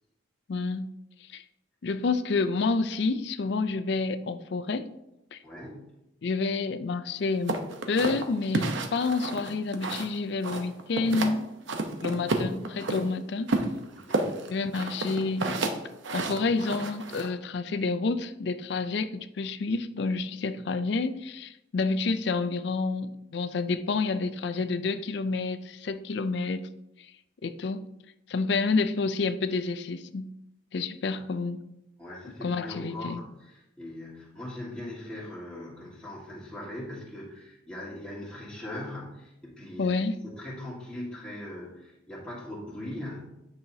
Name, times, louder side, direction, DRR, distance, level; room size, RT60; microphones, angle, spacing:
voice 1, 0.5-0.9 1.3-1.4 1.8-4.9 5.3-5.4 6.2-7.6 7.9-11.5 12.0-13.5 14.5-15.6 16.1-26.7 27.4-27.8 28.3-30.3 30.7-31.6 32.4-33.2 39.8-40.1, left 3 dB, 60° left, 12 dB, 0.4 m, -29 dB
voice 2, 5.4-5.9 13.9-14.3 31.1-31.3 32.0-43.4, left 1 dB, 5° left, -7 dB, 1.7 m, -40 dB
sound 1, 7.5-10.2 10.4-11.4 11.7-13.0 13.5-17.3, right 2 dB, 75° right, 0.8 m, -30 dB
9.5 x 5.6 x 2.8 m, 0.88 s
head